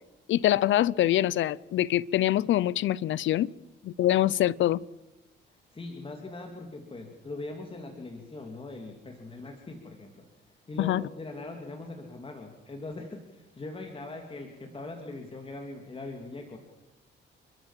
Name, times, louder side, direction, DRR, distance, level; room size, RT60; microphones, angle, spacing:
voice 1, 0.3-3.5 3.8-4.8 10.8-11.0, left 13 dB, 75° left, 0.7 m, -24 dB
voice 2, 5.5-16.6, left 2 dB, 25° left, 3.0 m, -41 dB
30.0 x 13.0 x 7.6 m
cardioid pair, 90°, 20 cm